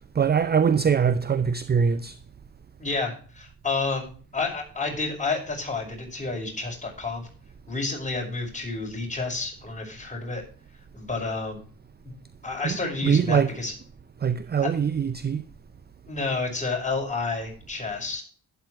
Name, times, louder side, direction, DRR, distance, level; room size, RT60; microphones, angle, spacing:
voice 1, 0.1-2.2 12.6-12.8 13.0-13.5 14.2-15.4, right 7 dB, 20° right, 0.6 m, -22 dB
voice 2, 2.8-7.3 7.7-10.4 10.9-11.6 12.4-13.7 14.6-14.7 16.1-18.2, left 3 dB, 15° left, 5.4 m, -30 dB
11.5 x 10.5 x 3.1 m
figure-of-eight pair, 45°, 46 cm